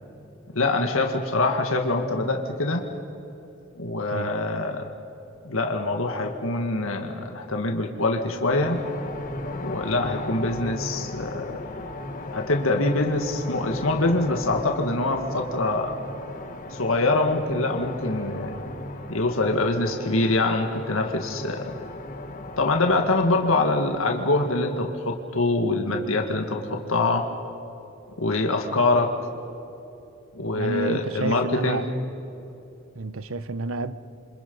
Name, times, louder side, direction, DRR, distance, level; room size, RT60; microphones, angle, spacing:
voice 1, 0.5-2.8 3.8-4.9 5.4-8.8 9.6-11.6 12.3-16.0 16.7-18.6 19.1-21.7 22.6-27.3 28.2-29.2 30.3-31.8, left 2 dB, 80° left, 1.8 m, -24 dB
sound 1, 8.5-24.6, left 2 dB, 40° left, 1.7 m, -37 dB
voice 2, 30.5-31.9 32.9-33.9, right 3 dB, 80° right, 0.9 m, -30 dB
28.0 x 25.5 x 5.5 m
head